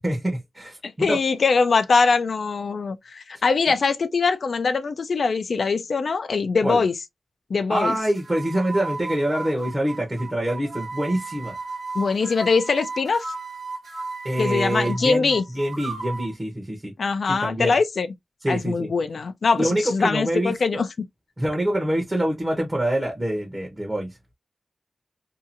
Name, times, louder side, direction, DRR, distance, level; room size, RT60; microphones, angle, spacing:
voice 1, 0.0-1.2 6.6-6.8 7.7-11.5 14.2-16.9 17.3-17.8 18.4-18.9 19.6-20.8 21.4-24.1, right 1 dB, 15° right, 0.8 m, -25 dB
voice 2, 0.8-6.9 7.5-8.0 11.9-13.3 14.4-15.4 17.0-18.1 18.5-20.9, left 4 dB, 65° left, 0.3 m, -22 dB
sound 1, 8.1-16.3, right 3 dB, 90° right, 1.2 m, -35 dB
2.7 x 2.4 x 2.5 m
wide cardioid pair, 120°, 0 cm